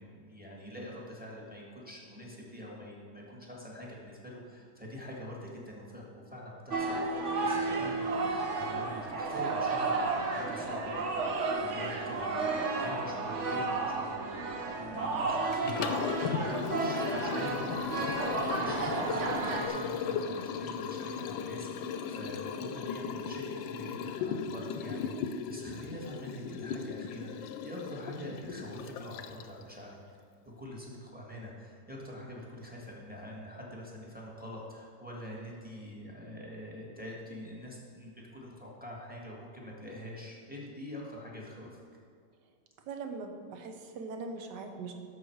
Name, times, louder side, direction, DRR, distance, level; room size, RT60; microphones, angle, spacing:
voice 1, 0.0-14.2 14.7-30.0 30.6-41.8, left 1 dB, 5° right, -3 dB, 1.6 m, -45 dB
sound 1, 6.7-19.7, right 3 dB, 50° right, 1.1 m, -32 dB
Liquid, 15.5-29.6, left 6 dB, 85° left, 1.3 m, -37 dB
voice 2, 42.9-44.9, right 4 dB, 65° right, 5 dB, 1.5 m, -41 dB
13.0 x 6.4 x 4.6 m, 2.1 s
omnidirectional pair, 2.1 m